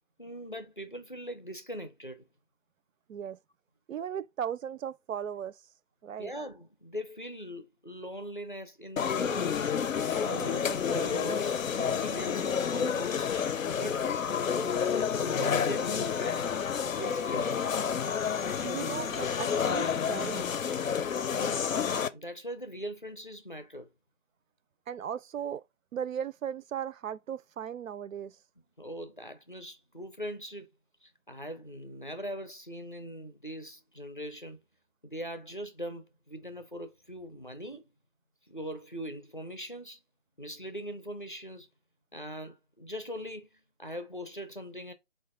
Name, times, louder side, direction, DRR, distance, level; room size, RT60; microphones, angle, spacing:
voice 1, 0.2-2.3 6.2-9.5 10.0-13.4 13.7-14.1 14.6-14.8 15.1-16.5 17.0-17.9 21.3-21.7 22.1-23.9 28.8-30.7 31.0-34.6 35.0-37.9 38.4-40.0 40.4-41.7 42.1-44.9, equal, 40° left, 0.5 m, -41 dB
voice 2, 3.9-5.6 6.0-6.3 10.4-10.6 18.6-20.5 24.9-25.6 25.9-28.4, right 8 dB, 90° right, 0.5 m, -37 dB
sound 1, 9.0-22.1, left 7 dB, 90° left, 0.6 m, -30 dB
4.1 x 2.4 x 3.5 m
figure-of-eight pair, 180°, 39 cm